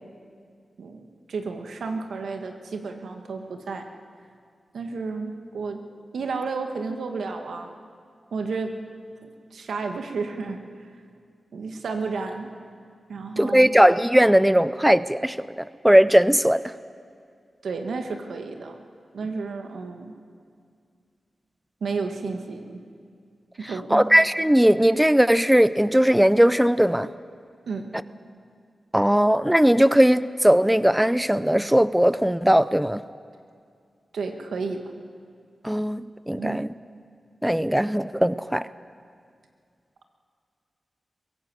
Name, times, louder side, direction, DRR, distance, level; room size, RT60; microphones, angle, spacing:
voice 1, 0.8-3.8 4.7-5.8 6.1-7.7 8.3-8.7 9.2-10.9 11.5-12.5 13.1-13.7 17.6-18.8 19.1-20.2 21.8-22.8 23.6-24.1 27.7-27.9 34.1-34.8 36.4-36.6, right 4 dB, 90° right, 5 dB, 1.8 m, -32 dB
voice 2, 13.4-16.7 23.9-27.1 28.9-33.0 35.6-36.7 37.4-38.7, equal, 5° right, 15 dB, 0.5 m, -19 dB
23.5 x 17.0 x 7.8 m, 2.2 s
cardioid pair, 60°, 0 cm